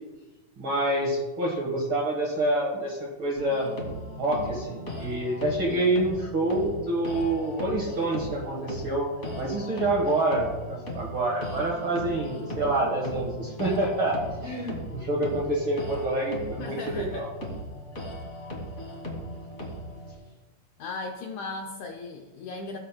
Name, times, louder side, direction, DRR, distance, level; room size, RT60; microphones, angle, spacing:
voice 1, 0.6-3.7 4.2-17.3, right 1 dB, 55° right, -2 dB, 1.6 m, -27 dB
sound 1, 3.4-20.1, equal, 30° left, 1.3 m, -38 dB
voice 2, 16.6-17.3 20.8-22.8, left 3 dB, 80° left, 2 dB, 1.7 m, -36 dB
16.5 x 7.5 x 2.2 m, 1.2 s
omnidirectional pair, 4.1 m